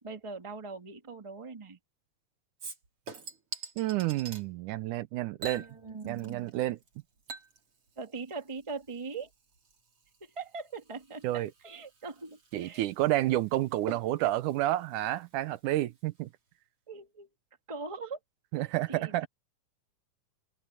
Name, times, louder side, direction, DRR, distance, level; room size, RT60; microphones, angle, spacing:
voice 1, 0.0-1.8 5.6-6.5 8.0-9.3 10.2-12.9 16.9-17.3 17.7-18.2 18.9-19.3, right 4 dB, 15° right, 1.3 m, -41 dB
Chink clink / Liquid, 2.6-4.4 5.4-6.5 6.8-15.8 16.2-16.3, right 4 dB, 45° right, 4.5 m, -47 dB
voice 2, 3.8-5.6 6.1-6.8 11.2-11.5 12.5-16.3 18.5-19.3, right 15 dB, 85° right, 2.2 m, -30 dB
omnidirectional pair, 3.6 m